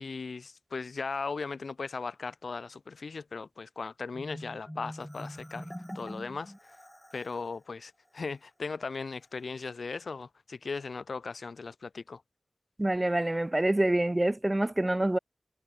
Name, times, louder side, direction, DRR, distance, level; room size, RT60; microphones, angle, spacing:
voice 1, 0.0-6.7 7.1-12.2, left 4 dB, 85° left, 2.1 m, -38 dB
Marimba xylophone, 4.1-7.5, equal, 5° left, 2.0 m, -44 dB
voice 2, 12.8-15.2, right 1 dB, 20° right, 0.7 m, -26 dB
wide cardioid pair, 80°, 0 cm